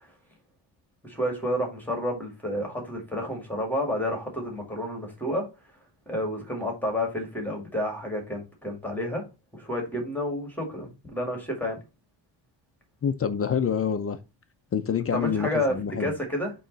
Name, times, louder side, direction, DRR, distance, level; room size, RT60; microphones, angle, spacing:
voice 1, 1.0-5.5 6.1-9.2 9.5-11.8 15.1-15.7 16.0-16.5, left 1 dB, 5° left, 1.9 m, -30 dB
voice 2, 13.0-14.2 14.7-16.1, left 7 dB, 30° left, 0.5 m, -27 dB
8.5 x 3.1 x 3.9 m
cardioid pair, 150°, 43 cm